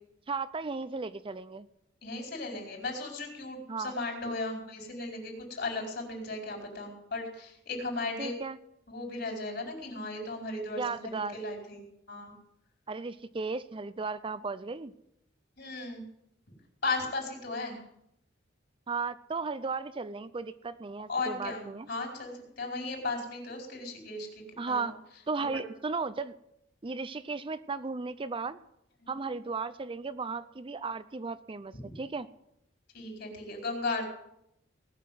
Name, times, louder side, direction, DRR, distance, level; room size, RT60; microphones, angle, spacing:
voice 1, 0.3-1.7 3.7-3.9 8.2-8.6 10.7-11.4 12.9-14.9 18.9-21.9 24.6-24.9 25.3-26.3 26.8-28.6 29.1-32.3, right 4 dB, 25° right, 14 dB, 0.5 m, -35 dB
voice 2, 2.0-8.3 8.9-11.8 12.1-12.3 15.6-16.0 16.8-17.8 21.1-24.3 24.6-24.9 25.4-25.5 31.7-31.8 32.9-34.0, left 3 dB, 55° left, 2 dB, 4.6 m, -36 dB
19.0 x 6.5 x 9.3 m, 0.78 s
head